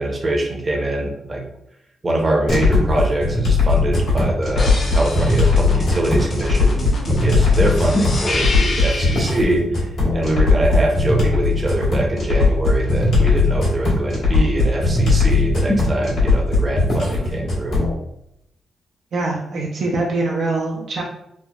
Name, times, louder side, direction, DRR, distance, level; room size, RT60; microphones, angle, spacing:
voice 1, 0.0-1.4 2.0-17.8, right 1 dB, 30° right, 0 dB, 0.7 m, -23 dB
sound 1, 2.5-17.9, left 3 dB, 80° left, 1.2 m, -18 dB
sound 2, 4.6-9.4 12.2-13.3, left 2 dB, 55° left, 0.6 m, -28 dB
voice 2, 19.1-21.0, right 2 dB, 70° right, -2 dB, 0.4 m, -23 dB
3.2 x 2.0 x 2.3 m, 0.78 s
cardioid pair, 85°, 0 cm